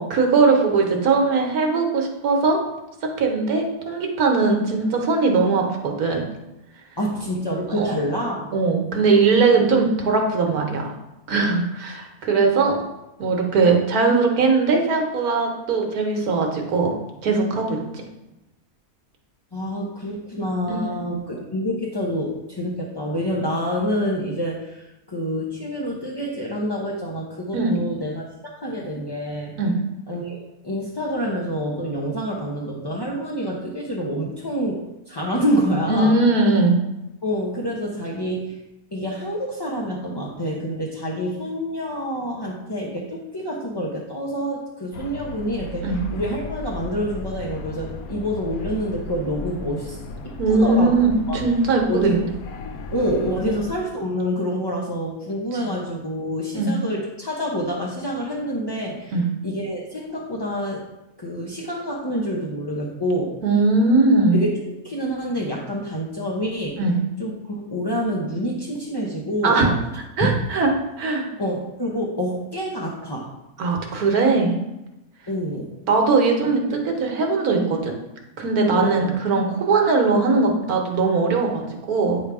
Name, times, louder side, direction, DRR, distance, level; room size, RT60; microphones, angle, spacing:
voice 1, 0.0-2.6 3.2-6.2 7.7-7.9 8.5-10.9 11.3-12.8 13.2-16.9 17.2-18.0 20.7-21.1 27.5-27.8 29.6-29.7 35.9-36.8 45.8-45.9 50.4-52.3 56.5-56.7 59.1-59.3 63.4-64.4 66.8-67.0 69.4-69.7 70.2-70.7 71.0-71.3 73.6-74.6 75.9-77.9 78.4-82.2, right 3 dB, 75° right, 1 dB, 1.6 m, -20 dB
voice 2, 7.0-8.5 19.5-29.6 30.1-36.2 37.2-38.6 38.9-50.0 50.2-51.0 51.3-51.4 51.9-52.2 52.9-60.9 61.2-63.3 64.3-66.8 67.2-69.6 70.2-70.3 71.4-73.3 75.3-75.7 78.7-79.1, equal, 25° left, -4 dB, 0.5 m, -27 dB
sound 1, 44.9-53.8, left 2 dB, 70° left, 1.1 m, -35 dB
9.1 x 3.4 x 4.8 m, 0.93 s
omnidirectional pair, 1.6 m